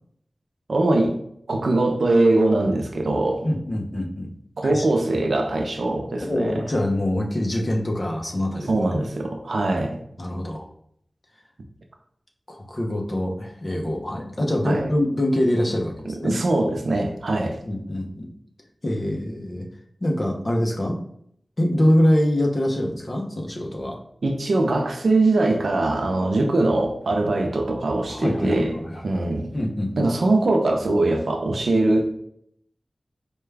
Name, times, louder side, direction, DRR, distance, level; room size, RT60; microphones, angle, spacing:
voice 1, 0.7-1.2 1.5-3.5 4.6-6.6 8.7-10.0 14.7-14.9 16.1-17.6 24.2-28.8 29.0-29.5 30.0-32.1, right 2 dB, 90° right, 4 dB, 0.6 m, -22 dB
voice 2, 3.4-4.3 4.6-4.9 6.2-8.8 10.2-10.6 12.5-16.4 17.6-18.3 18.8-19.7 20.0-21.0 21.6-23.9 28.1-29.2 29.5-30.1, left 1 dB, 40° left, 1 dB, 0.7 m, -24 dB
4.7 x 2.3 x 3.3 m, 0.70 s
wide cardioid pair, 80°, 0 cm